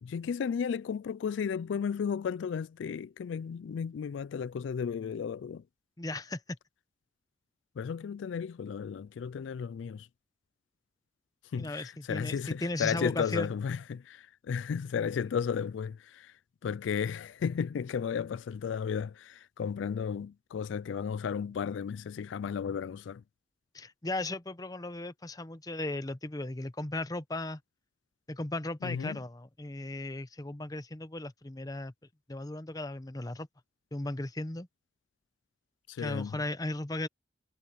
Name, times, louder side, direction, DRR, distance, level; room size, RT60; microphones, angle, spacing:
voice 1, 0.0-5.6 7.8-10.1 11.5-23.2 28.8-29.2 35.9-36.4, left 7 dB, 85° left, 0.3 m, -34 dB
voice 2, 6.0-6.4 11.6-13.5 23.7-27.6 28.3-31.9 32.3-33.5 33.9-34.7 36.0-37.1, left 2 dB, 20° left, 0.8 m, -36 dB
head